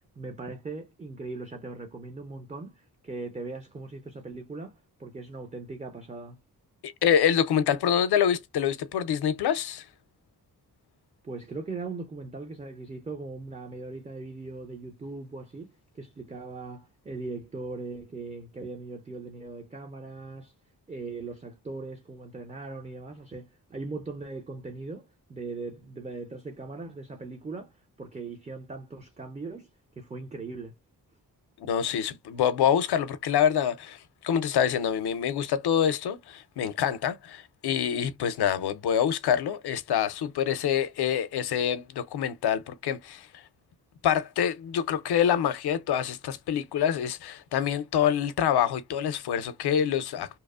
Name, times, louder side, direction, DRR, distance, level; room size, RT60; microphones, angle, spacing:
voice 1, 0.2-6.4 11.2-20.5 20.9-29.7 30.0-30.8, right 3 dB, 20° right, 0.5 m, -39 dB
voice 2, 6.8-9.8 31.6-43.4 44.0-50.4, left 9 dB, 80° left, 0.5 m, -26 dB
2.9 x 2.0 x 2.3 m
cardioid pair, 75°, 38 cm